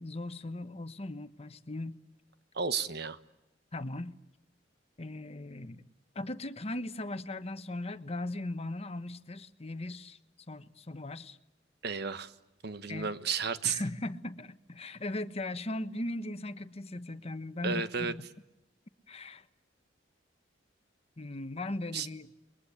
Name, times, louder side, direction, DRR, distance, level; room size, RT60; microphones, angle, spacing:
voice 1, 0.0-2.0 3.7-4.2 5.0-5.8 6.1-10.2 10.5-11.4 12.9-13.1 13.6-18.2 19.1-19.4 21.2-22.3, left 2 dB, 35° left, 11 dB, 1.1 m, -38 dB
voice 2, 2.5-3.2 11.8-12.3 12.6-13.8 17.6-18.1 21.9-22.1, right 5 dB, 60° right, 12 dB, 1.3 m, -32 dB
30.0 x 22.0 x 8.6 m, 0.91 s
head